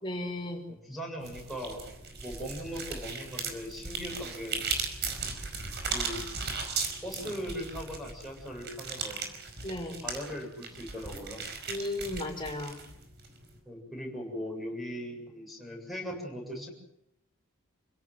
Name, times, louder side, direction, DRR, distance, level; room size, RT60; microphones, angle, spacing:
voice 1, 0.0-0.6 9.6-10.0 11.7-12.8, left 1 dB, 25° left, 2 dB, 5.0 m, -35 dB
voice 2, 0.7-1.9 2.2-4.6 5.9-6.2 7.0-9.3 10.0-11.4 13.7-16.7, equal, ahead, 0 dB, 7.6 m, -39 dB
sound 1, 1.2-13.6, right 4 dB, 50° right, 5.1 m, -37 dB
29.0 x 17.5 x 8.0 m, 0.82 s
head